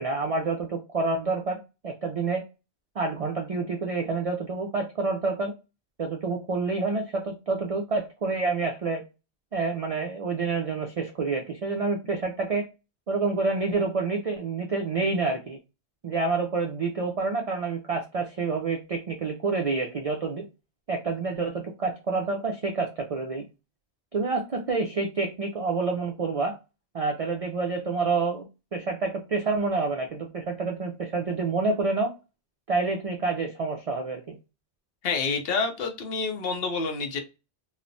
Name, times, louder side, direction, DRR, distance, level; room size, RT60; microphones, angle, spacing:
voice 1, 0.0-1.6 1.8-2.4 3.0-5.5 6.0-9.0 9.5-12.6 13.1-15.6 16.0-20.4 20.9-23.4 24.1-26.6 26.9-28.4 28.7-32.1 32.7-34.4, right 4 dB, 70° right, 2 dB, 0.3 m, -28 dB
voice 2, 35.0-37.2, left 4 dB, 65° left, 5 dB, 0.7 m, -28 dB
3.0 x 2.0 x 2.5 m, 0.28 s
omnidirectional pair, 1.2 m